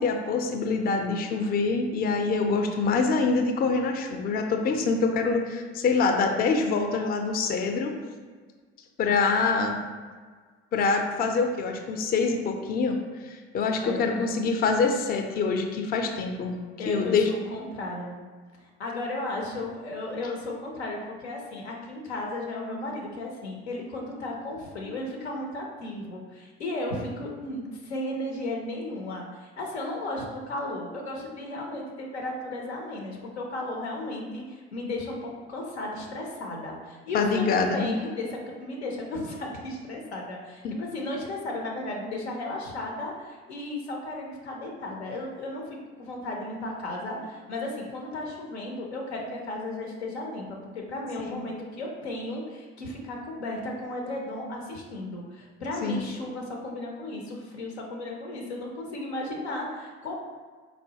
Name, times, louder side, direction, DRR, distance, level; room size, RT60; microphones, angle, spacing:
voice 1, 0.0-7.9 9.0-9.8 10.7-13.0 13.2-16.6 16.9-17.3 37.1-37.9 40.6-40.7 51.2-51.4 55.8-56.1, left 4 dB, 30° left, 4 dB, 0.4 m, -25 dB
voice 2, 13.8-14.3 16.8-17.2 17.5-18.2 18.6-50.5 50.7-60.1, left 2 dB, 90° left, 0 dB, 0.5 m, -34 dB
3.9 x 2.1 x 2.7 m, 1.5 s
figure-of-eight pair, 55°, 32 cm